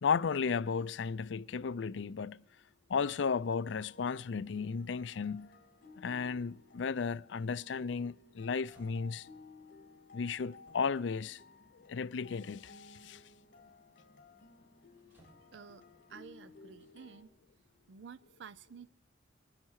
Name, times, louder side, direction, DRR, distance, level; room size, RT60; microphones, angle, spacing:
voice 1, 0.0-2.4 2.9-5.5 6.0-9.3 10.1-11.4 11.7-13.2, left 5 dB, 75° left, 0.5 m, -34 dB
sound 1, 3.0-17.2, left 3 dB, 55° left, 2.7 m, -58 dB
sound 2, 8.6-9.4 10.7-11.2 12.2-12.3 15.0-15.8 16.7-16.9, equal, 15° right, 6.8 m, -65 dB
voice 2, 15.5-17.3 17.9-18.9, right 6 dB, 70° right, 0.5 m, -51 dB
23.5 x 10.0 x 4.7 m
head